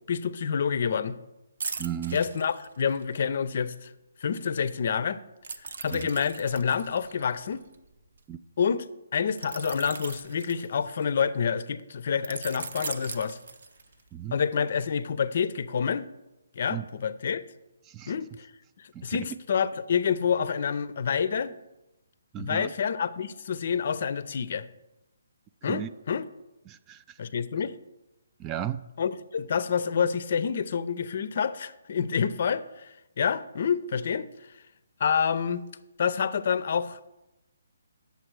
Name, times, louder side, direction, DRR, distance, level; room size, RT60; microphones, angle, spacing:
voice 1, 0.1-1.2 2.1-3.9 4.2-5.2 5.8-7.6 8.6-8.9 9.1-13.4 14.3-16.1 16.6-17.4 18.1-18.5 19.0-21.5 22.4-24.6 25.6-26.3 27.2-27.7 29.0-34.3 35.0-35.6 36.0-37.1, left 7 dB, 55° left, 15 dB, 0.6 m, -28 dB
sound 1, 1.6-3.1 5.4-8.2 9.4-11.2 12.2-14.1 14.5-14.7, right 5 dB, 65° right, 0.8 m, -39 dB
voice 2, 1.8-2.2 5.9-6.1 8.3-8.4 14.1-14.4 16.7-16.8 17.9-18.1 18.9-19.4 22.3-22.7 25.7-25.9 26.7-27.2 28.4-28.8, right 10 dB, 20° right, 13 dB, 0.3 m, -35 dB
8.8 x 6.9 x 4.7 m, 0.95 s
hypercardioid pair, 150°, 0 cm